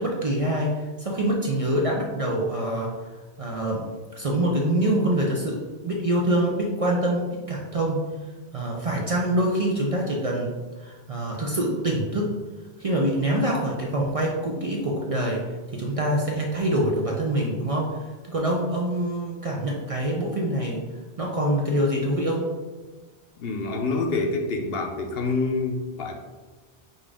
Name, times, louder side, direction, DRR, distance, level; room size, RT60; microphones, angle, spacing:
voice 1, 0.0-2.9 3.4-8.0 8.5-10.5 10.8-12.3 12.8-15.4 15.7-20.8 21.2-22.5, right 1 dB, 45° right, -2 dB, 0.5 m, -25 dB
voice 2, 23.4-26.1, left 3 dB, 70° left, 2 dB, 0.8 m, -27 dB
5.4 x 2.5 x 3.4 m, 1.3 s
omnidirectional pair, 1.1 m